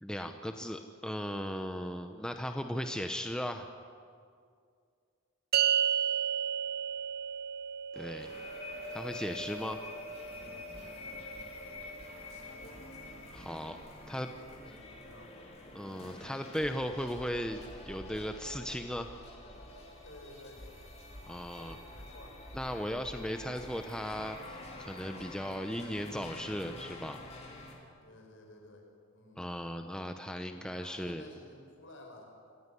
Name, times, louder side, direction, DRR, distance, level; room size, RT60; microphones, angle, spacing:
voice 1, 0.0-3.7 8.0-8.3 8.9-9.8 13.3-13.8 14.1-14.3 15.7-19.1 21.3-21.8 22.5-27.2 29.4-31.3, equal, 5° left, 6 dB, 0.8 m, -37 dB
sound 1, 5.5-12.1, right 9 dB, 50° right, 1.0 m, -34 dB
sound 2, 7.9-27.8, left 2 dB, 30° left, 3.8 m, -47 dB
voice 2, 12.3-12.8 13.9-15.3 19.3-20.7 21.5-22.3 28.0-29.4 30.5-32.3, left 2 dB, 65° left, 1 dB, 5.8 m, -54 dB
26.0 x 15.5 x 9.9 m, 2.2 s
head